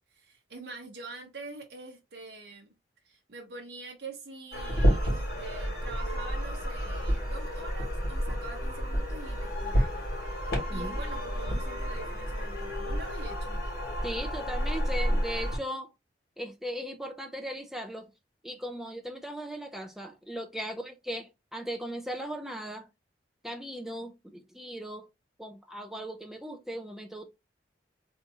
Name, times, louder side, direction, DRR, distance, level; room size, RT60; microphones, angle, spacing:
voice 1, 0.1-2.7 3.0-10.1 10.4-13.6, right 3 dB, 60° right, 0.8 m, -45 dB
sound 1, 4.5-15.6, equal, 55° left, 2.1 m, -30 dB
voice 2, 14.0-15.9 16.4-18.1 18.4-22.9 23.4-25.1 25.4-27.2, equal, ahead, 0.5 m, -38 dB
3.5 x 2.7 x 2.8 m
head